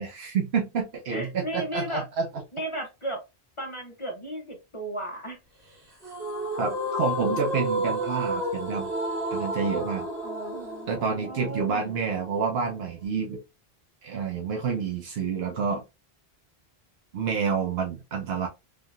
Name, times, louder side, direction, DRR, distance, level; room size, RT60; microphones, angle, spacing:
voice 1, 0.0-2.3 6.6-8.9 9.3-10.1 10.9-13.4 14.0-15.8 17.1-18.5, right 5 dB, 80° right, 1 dB, 0.9 m, -28 dB
voice 2, 1.1-2.0 2.5-3.2 3.6-5.4 10.2-11.9, right 1 dB, 35° left, 1 dB, 0.8 m, -35 dB
sound 1, 6.0-13.1, right 1 dB, 60° right, 1.9 m, -31 dB
3.5 x 2.7 x 2.3 m, 0.25 s
omnidirectional pair, 1.0 m